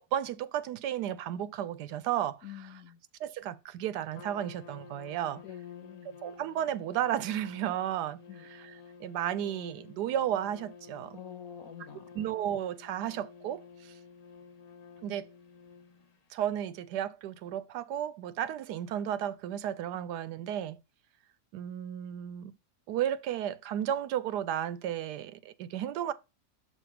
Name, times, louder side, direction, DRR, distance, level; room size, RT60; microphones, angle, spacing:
voice 1, 0.0-2.7 3.2-5.4 6.2-11.2 12.1-13.9 15.0-15.3 16.3-20.8 21.5-22.5 22.9-26.1, right 10 dB, 85° right, 1.2 m, -33 dB
voice 2, 2.4-3.0 5.4-6.2 8.3-8.5 11.1-12.1, left 9 dB, 65° left, 1.2 m, -46 dB
Trumpet, 4.1-16.2, left 6 dB, 45° left, 0.5 m, -52 dB
6.4 x 4.2 x 4.7 m
omnidirectional pair, 1.7 m